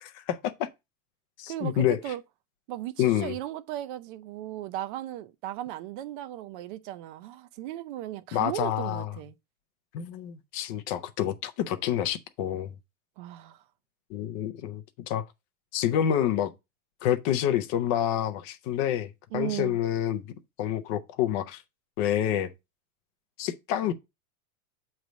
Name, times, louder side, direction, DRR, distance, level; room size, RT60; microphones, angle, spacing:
voice 1, 0.0-0.7 1.4-2.1 3.0-3.4 8.3-9.1 9.9-12.7 14.1-15.3 15.7-16.5 17.0-20.3 20.6-21.6 22.0-22.5 23.4-23.9, left 10 dB, 25° left, 0.4 m, -28 dB
voice 2, 1.5-2.2 2.7-9.3 13.2-13.6 19.3-19.8, right 13 dB, 40° right, 0.5 m, -36 dB
8.0 x 3.2 x 5.0 m
supercardioid pair, 150°, 43 cm